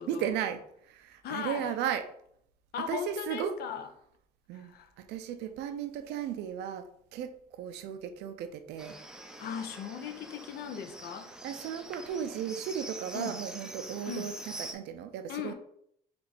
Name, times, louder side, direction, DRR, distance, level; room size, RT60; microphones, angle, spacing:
voice 1, 0.1-2.1 2.9-3.6 4.5-9.0 11.4-15.5, right 9 dB, 85° right, 0.5 m, -35 dB
voice 2, 1.2-1.7 2.7-3.9 4.5-4.9 9.4-11.3 13.1-13.4 14.1-14.3 15.3-15.5, left 7 dB, 70° left, 0.6 m, -38 dB
Livestock farm animals working animals, 8.8-14.7, right 1 dB, 5° right, 0.5 m, -45 dB
4.4 x 2.5 x 4.1 m
cardioid pair, 110°, 17 cm